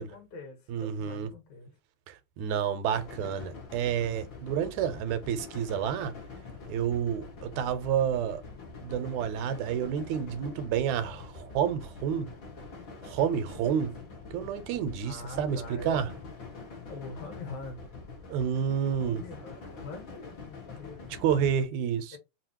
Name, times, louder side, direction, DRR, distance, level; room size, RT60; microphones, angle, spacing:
voice 1, 0.0-1.8 15.0-16.2 16.9-17.9 19.0-21.2 22.1-22.2, left 2 dB, 80° left, 3.0 m, -44 dB
voice 2, 0.7-1.3 2.1-6.1 6.7-8.4 8.8-12.3 13.0-14.0 14.3-16.1 18.3-19.2 21.2-22.2, right 8 dB, 80° right, 2.1 m, -29 dB
sound 1, 2.9-21.6, left 4 dB, 45° left, 2.3 m, -45 dB
5.6 x 2.8 x 3.0 m
omnidirectional pair, 3.4 m